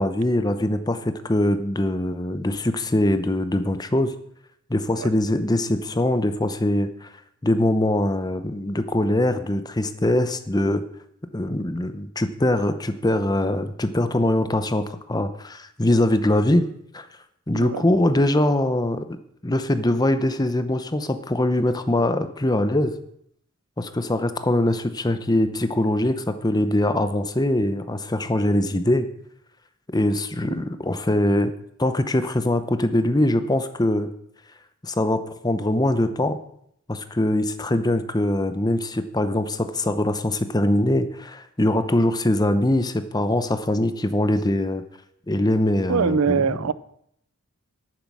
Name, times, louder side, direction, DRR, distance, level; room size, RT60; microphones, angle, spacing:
voice 1, 0.0-4.1 4.7-7.1 7.4-10.8 11.3-16.7 16.9-17.1 17.5-19.1 19.4-22.9 23.8-29.1 29.9-31.5 31.8-34.1 34.8-36.4 36.9-44.8 45.3-46.6, left 1 dB, 20° left, 10 dB, 0.8 m, -22 dB
voice 2, 17.5-17.8 30.5-30.6 45.9-46.7, right 5 dB, 85° right, 18 dB, 0.5 m, -23 dB
10.5 x 9.6 x 6.2 m, 0.71 s
head